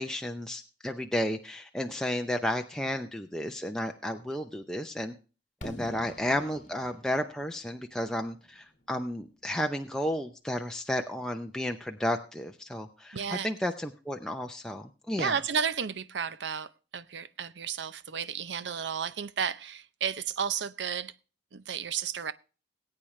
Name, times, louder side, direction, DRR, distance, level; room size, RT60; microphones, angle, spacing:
voice 1, 0.0-5.1 5.6-15.3, left 1 dB, 5° left, 0.6 m, -32 dB
Fireworks, 5.6-9.5, equal, 45° left, 1.7 m, -47 dB
voice 2, 13.1-13.5 15.2-21.1 21.5-22.3, right 7 dB, 70° right, 0.6 m, -33 dB
19.5 x 8.7 x 3.2 m
head